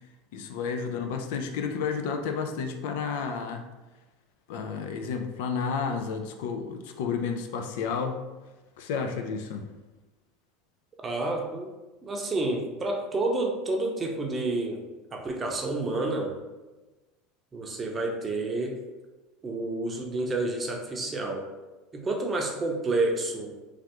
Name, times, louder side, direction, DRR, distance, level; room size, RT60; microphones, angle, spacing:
voice 1, 0.3-3.6 4.5-8.2 8.8-9.7, left 5 dB, 75° left, 5 dB, 0.4 m, -31 dB
voice 2, 11.0-11.7 12.0-14.8 15.1-16.3 17.5-18.8 19.4-21.5 21.9-23.5, right 2 dB, 25° right, 1 dB, 0.6 m, -29 dB
3.2 x 2.4 x 2.9 m, 1.2 s
supercardioid pair, 100°, 0 cm